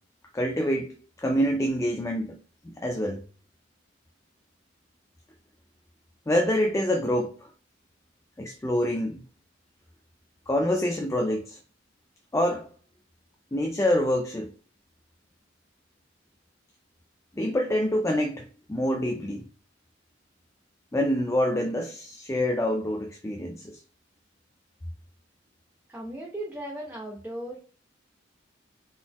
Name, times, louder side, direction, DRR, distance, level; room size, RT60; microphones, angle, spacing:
voice 1, 0.3-2.4 2.6-3.2 6.3-7.5 8.4-9.2 10.5-11.6 12.3-12.7 13.5-14.5 17.3-19.4 20.9-23.8, equal, 15° left, 0.4 m, -26 dB
voice 2, 25.9-27.6, right 1 dB, 10° right, 0.7 m, -37 dB
4.0 x 3.9 x 2.9 m
head